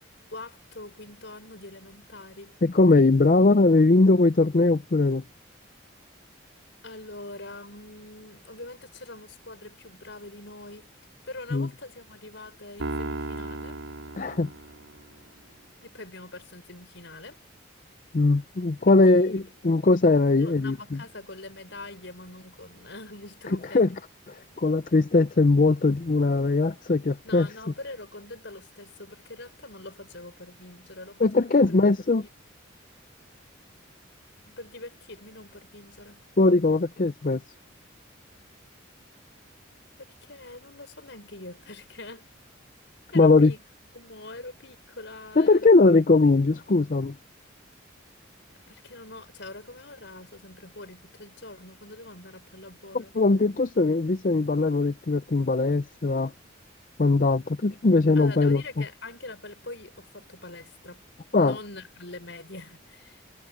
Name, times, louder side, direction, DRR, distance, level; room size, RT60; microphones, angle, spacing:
voice 1, 0.3-2.6 6.8-10.9 11.3-13.8 15.8-17.4 18.9-19.4 20.4-23.9 27.2-31.8 34.5-36.2 40.0-42.3 43.1-43.6 43.9-45.8 48.7-53.2 58.2-61.0 61.3-63.2, left 2 dB, 60° left, 6.1 m, -43 dB
voice 2, 2.6-5.2 11.5-11.7 14.2-14.5 18.1-21.0 23.7-23.9 24.3-27.5 31.2-32.3 36.4-37.4 43.1-43.5 45.4-47.2 52.9-56.3 57.0-58.8 61.3-61.6, left 3 dB, 40° left, 0.5 m, -20 dB
Piano, 12.8-15.2, right 2 dB, 85° right, 4.4 m, -35 dB
head